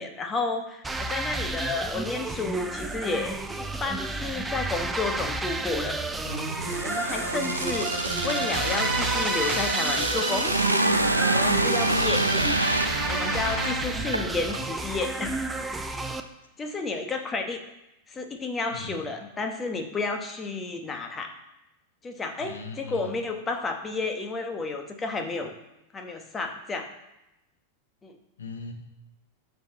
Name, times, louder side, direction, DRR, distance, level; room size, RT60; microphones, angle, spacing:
voice 1, 0.0-5.9 6.6-10.5 11.2-12.2 13.1-15.5 16.6-17.6 18.1-21.3 22.0-25.5 25.9-26.9 28.0-28.1, left 3 dB, 20° left, 6 dB, 1.3 m, -31 dB
sound 1, 0.8-16.2, right 2 dB, 10° right, 0.6 m, -31 dB
sound 2, 6.3-14.6 14.9-15.1, right 2 dB, 85° right, 0.5 m, -27 dB
voice 2, 18.7-19.1 22.4-23.2 28.4-28.7, left 4 dB, 65° left, 5 dB, 1.3 m, -39 dB
12.5 x 5.1 x 3.8 m, 0.91 s
figure-of-eight pair, 90°, 0 cm